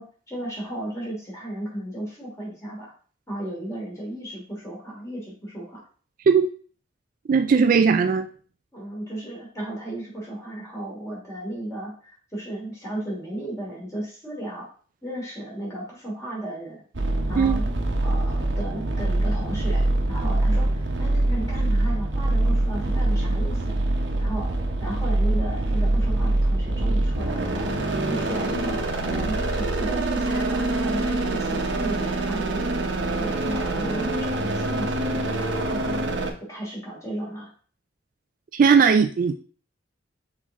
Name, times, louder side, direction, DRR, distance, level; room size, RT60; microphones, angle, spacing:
voice 1, 0.0-2.9 3.3-5.8 8.7-14.7 15.0-16.8 17.3-17.7 18.0-23.7 24.2-24.5 24.8-27.8 28.1-32.7 33.1-36.1 36.5-37.5, right 1 dB, 15° left, 2.9 m, -34 dB
voice 2, 7.3-8.3 17.4-17.6 38.5-39.3, right 5 dB, 45° right, 0.3 m, -18 dB
sound 1, 16.9-36.3, right 2 dB, 70° right, 0.9 m, -24 dB
6.2 x 4.2 x 3.6 m
head